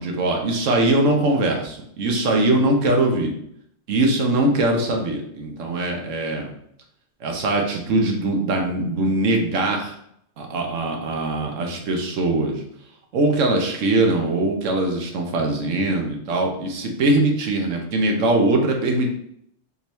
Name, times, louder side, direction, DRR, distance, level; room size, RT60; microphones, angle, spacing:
voice 1, 0.0-3.3 3.9-6.5 7.2-10.0 10.4-12.6 13.1-19.1, right 2 dB, 90° right, 2 dB, 1.1 m, -21 dB
3.7 x 2.8 x 3.0 m, 0.71 s
omnidirectional pair, 1.3 m